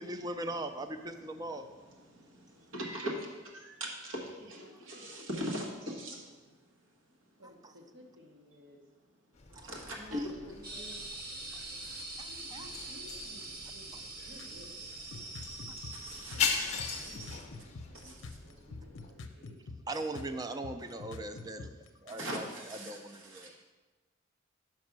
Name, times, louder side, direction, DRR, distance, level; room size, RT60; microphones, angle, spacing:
voice 1, 0.0-1.7 9.5-9.7 12.2-12.7 15.7-15.8 19.9-21.7 22.0-22.5 22.9-23.5, right 2 dB, 20° right, 8 dB, 0.4 m, -39 dB
voice 2, 1.1-7.4 9.5-10.6 11.5-12.0 15.9-17.4 17.9-18.4 22.1-23.5, equal, 85° right, -1 dB, 1.4 m, -42 dB
voice 3, 4.4-5.5 6.1-6.5 7.2-8.8 9.6-11.1 11.7-12.0 12.3-15.2 16.3-20.5 21.4-21.6, equal, 70° right, 1 dB, 1.2 m, -56 dB
sound 1, 9.3-19.1, left 5 dB, 35° left, 0.7 m, -40 dB
sound 2, 10.6-17.4, right 2 dB, 50° right, 0.9 m, -44 dB
sound 3, 14.4-14.6 15.1-22.3, left 3 dB, 70° left, 0.6 m, -45 dB
5.3 x 5.2 x 6.0 m, 1.3 s
head